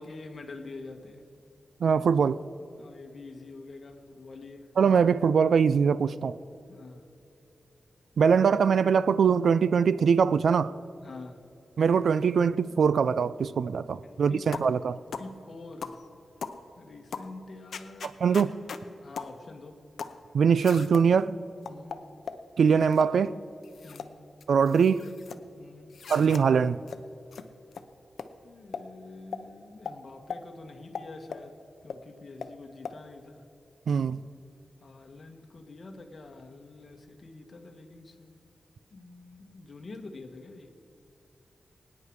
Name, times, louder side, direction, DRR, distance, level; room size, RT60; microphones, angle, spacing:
voice 1, 0.0-1.3 2.8-4.7 6.7-7.0 11.0-11.4 14.0-14.6 15.2-16.0 16.8-18.2 19.0-19.8 21.6-22.0 23.8-24.2 25.6-26.0 28.4-33.5 34.8-38.4 38.9-40.7, left 3 dB, 50° left, 1.4 m, -46 dB
voice 2, 1.8-2.4 4.8-6.4 8.2-10.7 11.8-15.0 18.0-18.5 20.3-21.4 22.6-23.3 24.5-25.1 26.1-26.8 33.9-34.2, right 6 dB, 85° right, 0.4 m, -22 dB
sound 1, 14.5-14.7 15.1-15.3 15.8-16.0 16.4-16.6 17.1-17.3 17.7-18.8 19.2-19.3 20.0-20.2 20.6-21.1 21.7-22.4 22.9-23.2 23.6-24.1 24.4-25.4 25.9-26.4 26.9-27.0 27.3-27.4 27.7-27.8 28.2-28.3 28.7-28.9 29.3-29.4 29.9-30.0 30.3-30.4 30.9-31.5 31.9-32.0 32.4-32.5 32.8-33.0, left 6 dB, 90° left, 0.7 m, -38 dB
23.5 x 9.8 x 4.7 m
wide cardioid pair, 100°, 0 cm